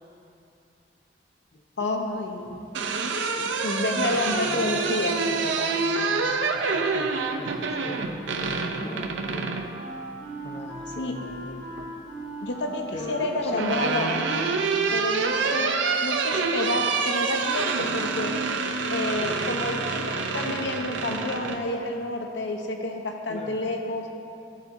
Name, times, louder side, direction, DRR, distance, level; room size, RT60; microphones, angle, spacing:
voice 1, 1.8-2.5 3.4-5.1 10.9-11.1 12.4-14.1 14.9-18.3 18.9-24.1, left 2 dB, 75° left, 3 dB, 0.8 m, -29 dB
sound 1, 2.5-9.7 11.2-11.9 13.1-21.6, right 4 dB, 80° right, 0.6 m, -27 dB
voice 2, 4.1-7.1 7.4-8.1 8.4-9.7 10.4-11.7 12.9-14.0 23.3-23.6, left 2 dB, 35° left, 2 dB, 0.4 m, -40 dB
Wind instrument woodwind instrument, 7.8-15.2, right 1 dB, 65° right, 2.1 m, -40 dB
13.0 x 7.7 x 2.7 m, 2.7 s
head